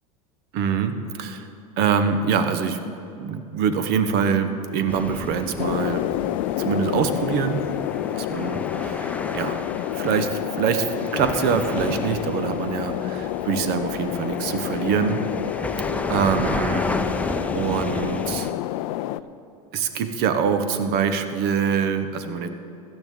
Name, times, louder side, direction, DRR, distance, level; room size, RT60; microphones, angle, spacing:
voice 1, 0.5-1.5 1.8-2.8 3.2-6.0 6.6-7.6 8.1-9.6 9.9-10.9 11.1-15.2 16.1-17.0 17.5-18.5 19.7-22.5, right 6 dB, 55° right, 9 dB, 1.1 m, -24 dB
sound 1, 4.9-18.5, left 2 dB, 5° left, 0.7 m, -32 dB
sound 2, 5.6-19.2, left 15 dB, 65° left, 0.4 m, -29 dB
16.5 x 12.5 x 3.7 m, 2.8 s
hypercardioid pair, 90°, 19 cm